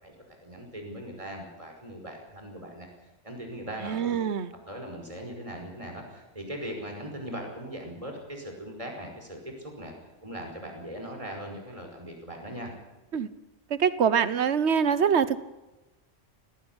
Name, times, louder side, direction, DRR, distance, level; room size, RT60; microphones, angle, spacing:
voice 1, 0.0-2.9 3.2-4.2 4.7-9.9 10.2-12.7, equal, 30° right, 2 dB, 5.5 m, -39 dB
voice 2, 3.8-4.5 13.1-13.3 13.7-15.5, right 7 dB, 80° right, 15 dB, 1.3 m, -24 dB
18.5 x 18.5 x 9.8 m, 1.1 s
omnidirectional pair, 1.1 m